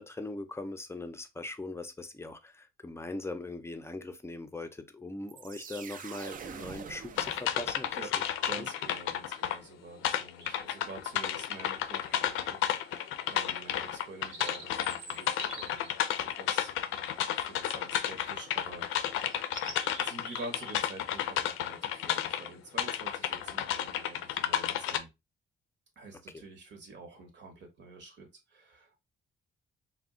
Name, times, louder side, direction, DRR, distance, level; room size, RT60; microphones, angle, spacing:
voice 1, 0.0-8.0 8.6-8.7, left 2 dB, 15° left, 0.5 m, -40 dB
sound 1, 5.3-8.1, right 7 dB, 45° right, 0.4 m, -45 dB
sound 2, 7.2-9.6 10.0-22.5 22.8-25.0, left 11 dB, 90° left, 0.4 m, -32 dB
voice 2, 8.4-16.0 16.3-16.7 17.3-19.5 20.0-25.1 26.0-29.0, right 2 dB, 65° right, 1.0 m, -48 dB
sound 3, 10.4-10.9 12.0-12.7 13.1-13.2 13.8-17.2 17.9-18.4 18.8-18.9 19.3-20.8 21.1-21.4, right 2 dB, 85° right, 1.0 m, -48 dB
2.3 x 2.1 x 3.6 m
cardioid pair, 90°, 20 cm